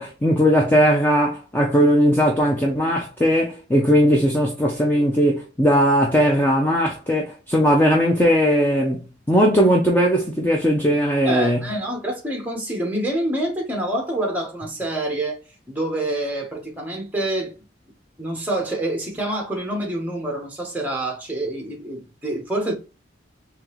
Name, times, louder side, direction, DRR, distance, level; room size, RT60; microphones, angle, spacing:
voice 1, 0.0-11.6, equal, 10° left, 0.5 m, -18 dB
voice 2, 11.2-15.4 15.7-17.5 18.2-22.7, right 1 dB, 10° right, 1.1 m, -26 dB
3.8 x 2.9 x 3.0 m
head